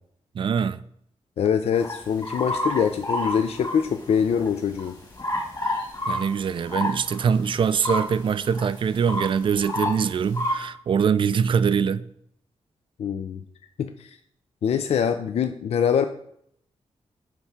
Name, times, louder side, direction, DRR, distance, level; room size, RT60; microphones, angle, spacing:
voice 1, 0.3-0.8 5.6-5.7 6.1-12.1, right 7 dB, 50° right, 0.4 m, -23 dB
voice 2, 1.4-5.0 13.0-13.4 13.8-14.2 14.6-16.1, left 7 dB, 65° left, 0.4 m, -24 dB
sound 1, 1.7-4.5 4.8-10.5, left 1 dB, 35° left, 1.9 m, -29 dB
9.7 x 3.5 x 5.7 m
cardioid pair, 100°, 11 cm